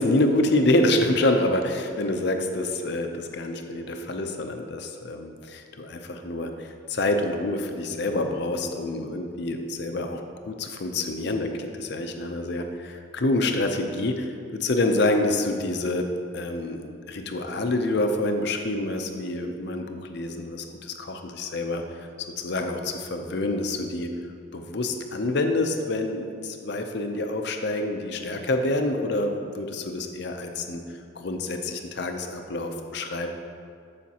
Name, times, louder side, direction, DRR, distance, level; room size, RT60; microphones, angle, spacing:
voice 1, 0.0-22.1 22.4-24.2 24.5-30.8 31.2-33.3, left 2 dB, 55° left, 5 dB, 0.6 m, -27 dB
13.5 x 5.0 x 2.9 m, 2.3 s
head